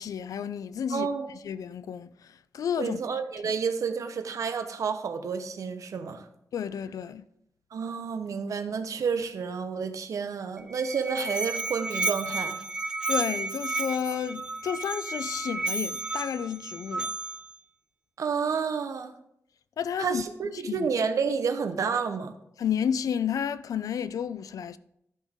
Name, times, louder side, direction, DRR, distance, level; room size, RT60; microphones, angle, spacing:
voice 1, 0.0-1.1 1.4-3.2 6.5-7.2 13.1-17.1 19.8-20.2 20.7-20.9 22.6-24.8, left 8 dB, 90° left, 0.4 m, -31 dB
voice 2, 0.9-1.3 2.8-6.3 7.7-12.6 18.2-19.1 20.0-22.3, right 5 dB, 70° right, 0.8 m, -30 dB
Musical instrument, 10.6-17.6, right 3 dB, 15° right, 0.3 m, -32 dB
12.5 x 5.4 x 3.6 m
wide cardioid pair, 165°, 6 cm